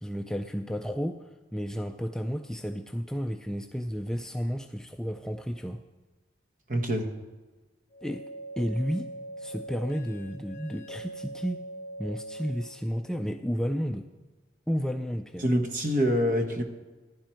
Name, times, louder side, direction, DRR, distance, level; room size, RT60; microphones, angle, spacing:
voice 1, 0.0-5.8 8.0-8.3 8.6-9.1 9.4-11.6 12.0-14.1 14.7-15.4, equal, 5° left, 5 dB, 0.3 m, -32 dB
voice 2, 6.7-7.1 15.4-16.6, equal, 45° right, 6 dB, 1.3 m, -25 dB
sound 1, 7.9-12.9, right 1 dB, 50° left, 2.2 m, -42 dB
15.0 x 11.5 x 4.5 m, 1.3 s
head